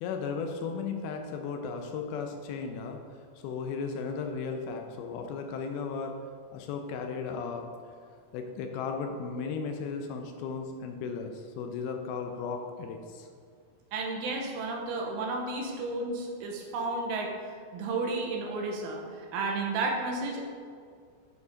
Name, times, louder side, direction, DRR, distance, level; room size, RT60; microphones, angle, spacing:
voice 1, 0.0-3.0 3.4-6.2 6.5-7.7 8.3-13.3, left 5 dB, 80° left, 4 dB, 2.4 m, -35 dB
voice 2, 13.9-17.3 17.7-20.5, right 3 dB, 80° right, 0 dB, 2.7 m, -32 dB
9.6 x 4.5 x 5.0 m, 2.1 s
omnidirectional pair, 4.7 m